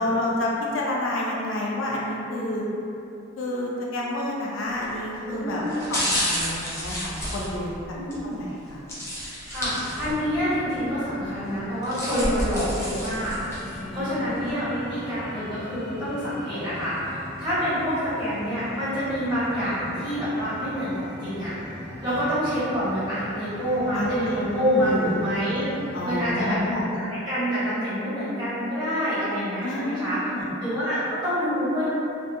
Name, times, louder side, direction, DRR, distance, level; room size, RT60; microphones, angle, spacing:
voice 1, 0.0-2.6 3.4-7.7 8.2-8.8 13.8-14.3 22.1-22.2 23.9-24.1 24.7-25.2 25.9-26.9 29.6-30.5, left 1 dB, 75° left, -4 dB, 0.4 m, -29 dB
sound 1, 4.7-5.0 5.6-8.2 8.9-10.3 10.7-10.8 11.6-13.8 14.3-14.4, equal, 15° left, 0.5 m, -30 dB
voice 2, 5.2-5.9 7.9-8.4 9.5-13.3 13.9-21.5 22.0-25.6 26.0-30.2 30.6-31.9, equal, 20° right, -14 dB, 1.2 m, -27 dB
sound 2, 9.6-26.4, left 1 dB, 55° right, 0.6 m, -40 dB
2.3 x 2.2 x 2.7 m, 2.8 s
head